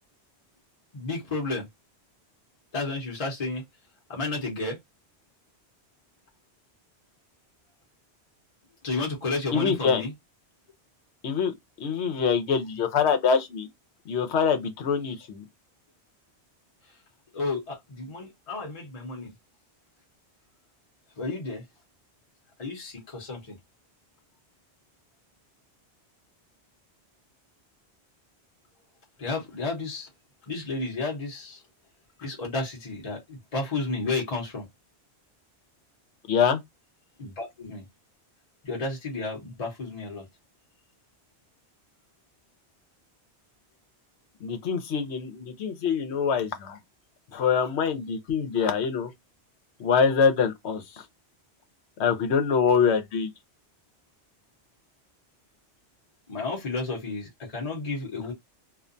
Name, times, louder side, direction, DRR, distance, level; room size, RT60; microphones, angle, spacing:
voice 1, 0.9-1.7 2.7-3.6 4.1-4.8 8.8-10.1 17.3-19.3 21.2-21.6 22.6-23.5 29.2-30.1 30.5-31.6 32.2-34.6 37.2-37.8 38.6-40.2 56.3-58.3, left 3 dB, 35° left, 0.9 m, -32 dB
voice 2, 9.5-10.0 11.2-11.5 11.8-13.7 14.1-15.4 36.3-36.6 44.4-46.8 47.3-49.1 49.8-50.8 52.0-53.3, left 6 dB, 85° left, 1.0 m, -24 dB
2.4 x 2.2 x 2.5 m
omnidirectional pair, 1.1 m